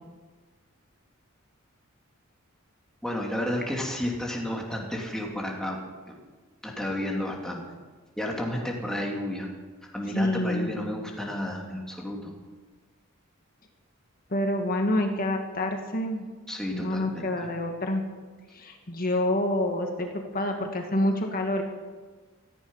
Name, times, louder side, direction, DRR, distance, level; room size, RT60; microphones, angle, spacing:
voice 1, 3.0-5.8 6.1-6.2 6.6-7.6 8.2-9.5 9.9-12.3 16.5-17.5, left 1 dB, 5° left, -1 dB, 2.7 m, -32 dB
voice 2, 10.1-10.7 14.3-16.3 16.7-18.0 18.5-21.6, left 1 dB, 45° left, 3 dB, 1.7 m, -27 dB
17.0 x 14.5 x 5.6 m, 1.4 s
head